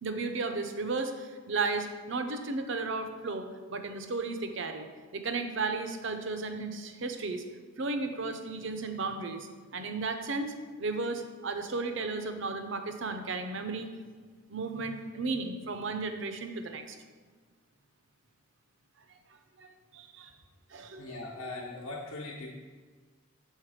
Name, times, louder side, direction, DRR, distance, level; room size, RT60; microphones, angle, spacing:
voice 1, 0.0-4.9 5.1-7.4 7.8-10.5 10.8-13.9 14.5-17.0 19.6-20.3 20.7-21.2, right 3 dB, 65° right, 7 dB, 0.6 m, -34 dB
voice 2, 21.0-22.5, left 2 dB, 75° left, -5 dB, 0.9 m, -40 dB
6.4 x 3.9 x 4.9 m, 1.4 s
head